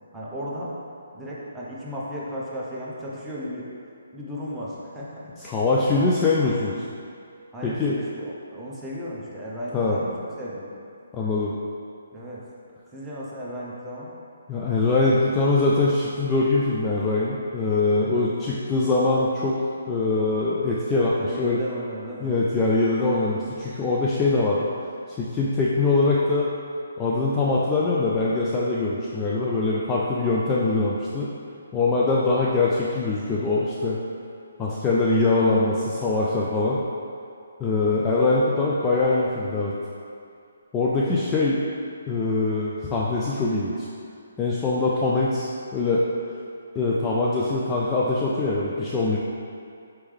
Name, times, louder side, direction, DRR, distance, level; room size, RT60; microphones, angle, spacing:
voice 1, 0.1-0.7 1.1-3.7 4.1-5.1 5.4-6.0 6.7-6.9 7.5-10.7 12.1-12.4 12.9-14.1 18.0-18.3 21.1-22.4 34.7-35.1 36.2-36.5 40.9-41.1, equal, 5° right, -8 dB, 0.7 m, -35 dB
voice 2, 5.4-6.8 7.6-8.0 9.7-10.0 11.1-11.5 14.5-19.6 19.9-21.6 22.2-24.7 25.1-26.5 27.0-31.3 31.7-34.0 34.6-36.8 37.6-39.7 40.7-41.6 42.1-43.9 44.4-46.1 46.8-49.2, left 3 dB, 15° left, -6 dB, 0.3 m, -23 dB
4.4 x 3.4 x 3.2 m, 2.4 s
hypercardioid pair, 155°, 0 cm